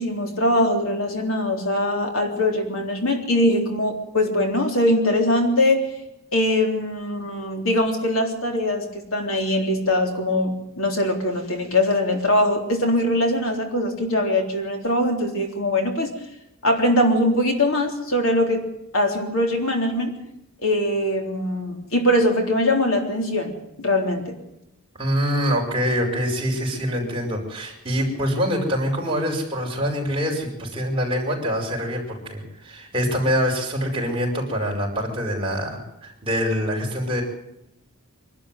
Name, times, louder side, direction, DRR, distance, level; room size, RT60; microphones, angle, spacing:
voice 1, 0.0-5.8 6.3-16.1 16.6-18.6 18.9-20.1 20.6-23.5 23.8-24.3, left 1 dB, 65° left, 3 dB, 3.7 m, -22 dB
voice 2, 25.0-37.2, equal, 25° right, -1 dB, 5.3 m, -25 dB
24.5 x 12.5 x 9.1 m, 0.87 s
head